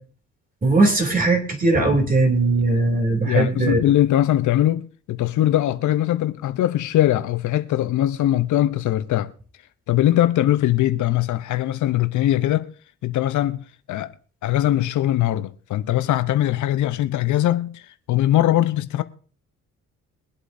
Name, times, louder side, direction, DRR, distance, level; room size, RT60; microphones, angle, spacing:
voice 1, 0.6-3.9, right 2 dB, 30° right, 2.8 m, -19 dB
voice 2, 3.2-9.3 9.9-12.7 13.0-14.1 14.4-19.0, left 13 dB, 75° left, 0.8 m, -21 dB
23.5 x 8.2 x 2.7 m
cardioid pair, 90°, 30 cm